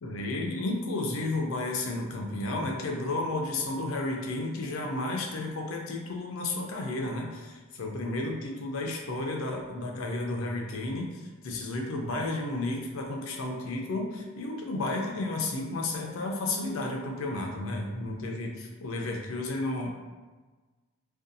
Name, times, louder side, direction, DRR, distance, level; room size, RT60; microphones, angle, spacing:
voice 1, 0.0-19.9, left 2 dB, 75° left, 1 dB, 0.4 m, -32 dB
2.6 x 2.3 x 2.5 m, 1.3 s
head